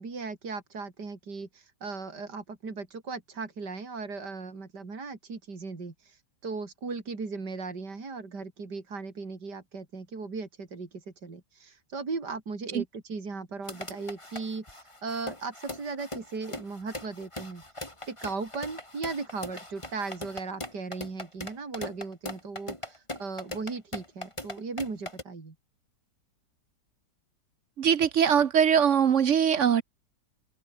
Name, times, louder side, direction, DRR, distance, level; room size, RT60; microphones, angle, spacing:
voice 1, 0.0-17.6 18.1-25.5, right 4 dB, 70° right, 4.1 m, -37 dB
sound 1, 13.7-25.2, left 1 dB, 15° left, 3.3 m, -40 dB
voice 2, 27.8-29.8, right 8 dB, 55° right, 1.0 m, -22 dB
open air
omnidirectional pair, 1.9 m